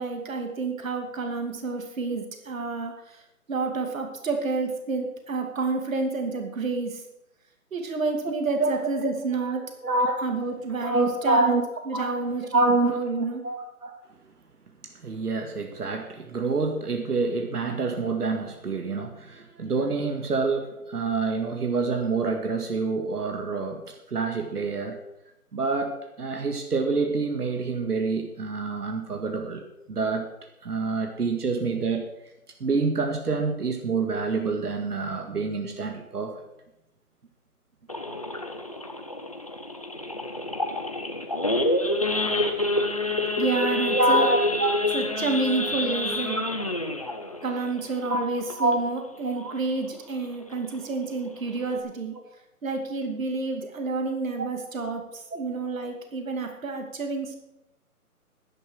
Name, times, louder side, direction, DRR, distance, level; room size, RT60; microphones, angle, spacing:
voice 1, 0.0-3.2 3.5-7.0 7.7-9.6 10.2-11.6 11.9-13.4 43.4-44.3 44.9-46.4 47.4-52.1 52.6-57.4, right 3 dB, 60° right, 4 dB, 2.6 m, -29 dB
voice 2, 8.6-9.1 9.8-10.3 10.8-11.6 11.9-12.2 12.5-13.9 14.8-25.0 25.5-30.3 30.6-32.1 32.6-36.4 43.9-44.9 46.6-46.7 48.1-48.3 48.5-48.9 49.2-49.5, right 3 dB, 85° right, 4 dB, 2.1 m, -27 dB
Idling / Accelerating revving vroom / Sawing, 37.9-49.0 49.4-49.6 49.8-49.9 50.4-50.7 51.2-51.3 51.5-51.8, left 2 dB, 25° left, 0.7 m, -28 dB
11.0 x 10.0 x 6.4 m, 0.87 s
hypercardioid pair, 170°, 45 cm